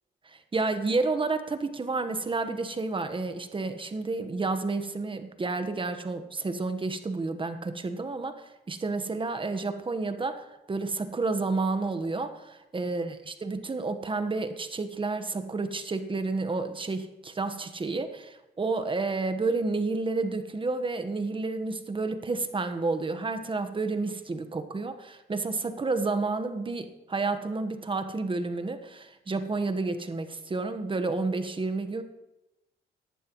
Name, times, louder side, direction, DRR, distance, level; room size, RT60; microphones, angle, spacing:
voice 1, 0.3-32.0, right 3 dB, 25° right, 8 dB, 1.2 m, -30 dB
17.5 x 11.0 x 3.1 m, 0.98 s
cardioid pair, 90°, 20 cm